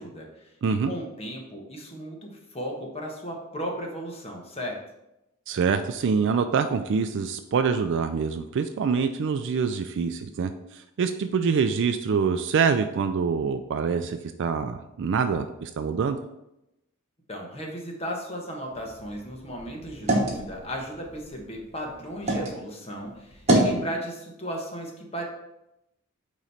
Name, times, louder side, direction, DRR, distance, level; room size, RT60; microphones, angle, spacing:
voice 1, 0.0-4.8 17.3-25.2, equal, 30° left, 0 dB, 1.2 m, -35 dB
voice 2, 0.6-0.9 5.5-16.2, right 5 dB, 60° right, 8 dB, 0.4 m, -25 dB
sound 1, 18.7-22.5 23.0-23.8, right 1 dB, 30° right, 1.3 m, -27 dB
8.8 x 3.1 x 4.1 m, 0.89 s
head